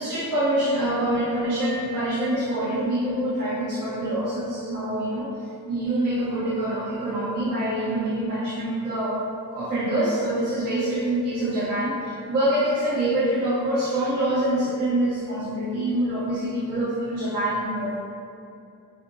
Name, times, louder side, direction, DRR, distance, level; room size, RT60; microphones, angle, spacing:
voice 1, 0.0-5.3 5.7-9.2 9.5-18.0, right 1 dB, 70° right, -9 dB, 0.9 m, -25 dB
4.8 x 2.6 x 2.6 m, 2.6 s
wide cardioid pair, 155°, 34 cm